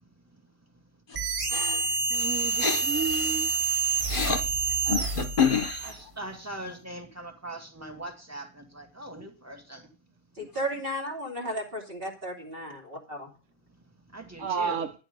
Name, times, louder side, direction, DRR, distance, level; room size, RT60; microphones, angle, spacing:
sound 1, 1.1-6.0, right 4 dB, 30° right, 0.8 m, -28 dB
voice 1, 1.5-2.0 2.6-2.9 4.0-4.5 4.8-6.0, left 6 dB, 45° left, 1.2 m, -27 dB
voice 2, 2.1-3.5 10.4-10.5 14.4-14.9, right 7 dB, 80° right, 1.2 m, -32 dB
voice 3, 5.8-9.9 14.1-14.9, right 1 dB, 10° right, 2.0 m, -41 dB
voice 4, 10.4-12.8 13.1-13.2, equal, 50° right, 3.2 m, -34 dB
11.5 x 9.9 x 5.2 m
omnidirectional pair, 1.3 m